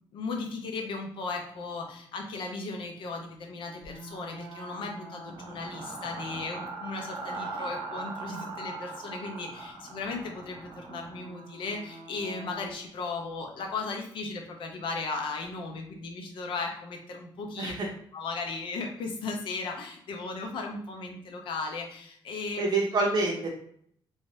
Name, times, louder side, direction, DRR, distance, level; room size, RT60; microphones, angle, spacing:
voice 1, 0.1-17.7 18.1-22.6, left 3 dB, 70° left, 2 dB, 0.7 m, -36 dB
sound 1, 3.8-12.7, right 3 dB, 85° right, 0.7 m, -41 dB
voice 2, 17.6-17.9 22.6-23.5, right 3 dB, 55° right, -2 dB, 0.8 m, -27 dB
3.2 x 2.7 x 3.2 m, 0.65 s
cardioid pair, 125°, 9 cm